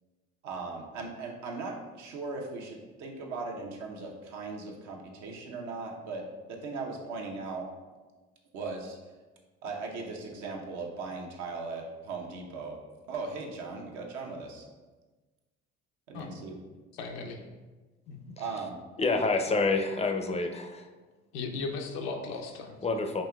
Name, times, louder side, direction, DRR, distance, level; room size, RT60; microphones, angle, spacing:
voice 1, 0.4-6.2 6.5-7.6 8.5-9.0 9.6-12.8 13.1-14.6 16.1-16.5 18.4-18.8 20.2-20.3, right 3 dB, 70° right, 0 dB, 0.8 m, -38 dB
voice 2, 16.9-17.5 18.1-18.2 21.3-22.7, left 4 dB, 85° left, 3 dB, 0.6 m, -36 dB
voice 3, 19.0-20.9 22.8-23.2, left 3 dB, 20° left, 5 dB, 0.4 m, -27 dB
5.3 x 2.8 x 2.3 m, 1.3 s
hypercardioid pair, 65°, 31 cm